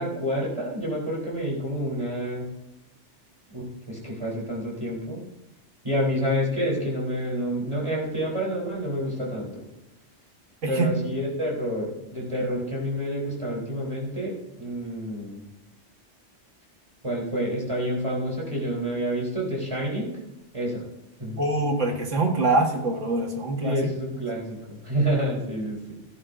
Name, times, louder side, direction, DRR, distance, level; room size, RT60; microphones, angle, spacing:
voice 1, 0.0-2.5 3.5-5.2 5.8-9.7 10.7-15.4 17.0-20.1 20.5-20.8 21.2-21.4 23.6-25.9, equal, 25° right, -4 dB, 3.9 m, -28 dB
voice 2, 21.4-23.8, right 2 dB, 75° right, 2 dB, 1.9 m, -24 dB
16.5 x 11.0 x 2.7 m, 0.94 s
omnidirectional pair, 1.3 m